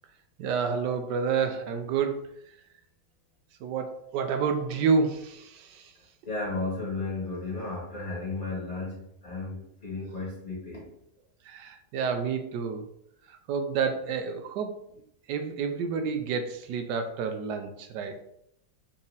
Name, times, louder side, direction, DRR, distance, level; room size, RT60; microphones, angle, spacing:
voice 1, 0.4-2.3 3.6-5.9 11.5-12.9 13.3-14.7 15.3-18.2, right 5 dB, 85° right, 6 dB, 1.2 m, -29 dB
voice 2, 6.3-10.9, left 3 dB, 45° left, -6 dB, 1.9 m, -34 dB
4.1 x 2.7 x 3.9 m, 0.75 s
omnidirectional pair, 1.8 m